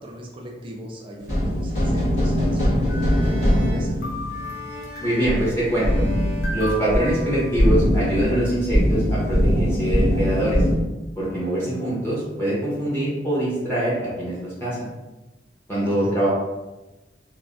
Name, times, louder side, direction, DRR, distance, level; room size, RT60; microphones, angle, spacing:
voice 1, 0.0-4.0 15.8-16.1, equal, 30° right, 0 dB, 0.4 m, -39 dB
sound 1, 1.2-10.7, equal, 40° left, 1.0 m, -22 dB
sound 2, 2.8-7.5, left 2 dB, 80° right, 0.6 m, -40 dB
sound 3, 2.9-3.7 4.0-5.4 6.4-8.0, equal, 70° left, 0.7 m, -36 dB
voice 2, 5.0-6.0 6.5-10.7 11.2-14.9 15.7-16.3, right 1 dB, 15° left, -9 dB, 0.7 m, -24 dB
3.2 x 2.0 x 2.4 m, 1.1 s
head